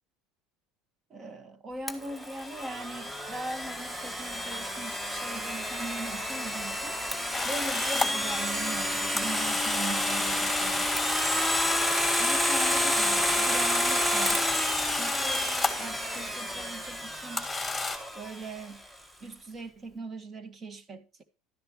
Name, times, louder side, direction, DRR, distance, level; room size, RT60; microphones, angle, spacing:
voice 1, 1.1-7.0 7.5-10.9 12.2-14.7 15.0-15.4 15.8-17.5 18.1-18.8 19.2-21.2, right 2 dB, 30° right, 1.7 m, -40 dB
Domestic sounds home sounds, 1.9-18.6, equal, 10° right, 1.5 m, -30 dB
sound 1, 7.3-8.1 9.2-15.9 17.4-18.0, left 3 dB, 5° left, 2.6 m, -32 dB
12.5 x 10.0 x 3.0 m
supercardioid pair, 115°, 0 cm